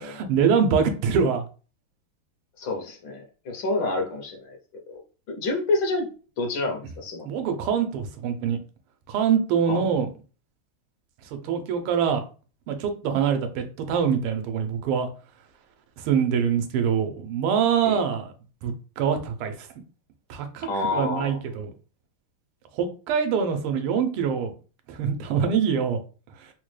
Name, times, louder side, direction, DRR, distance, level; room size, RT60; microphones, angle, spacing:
voice 1, 0.2-1.4 7.3-8.6 9.1-10.1 11.4-12.2 12.7-15.1 16.0-18.3 18.6-19.7 20.3-21.7 22.7-24.5 24.9-26.0, right 7 dB, 85° right, 7 dB, 1.6 m, -24 dB
voice 2, 2.6-4.6 4.9-5.0 5.3-6.1 6.4-7.3 9.7-9.9 17.8-18.0 20.7-21.4, left 2 dB, 70° left, 2 dB, 1.2 m, -28 dB
4.0 x 2.1 x 3.1 m, 0.36 s
omnidirectional pair, 2.4 m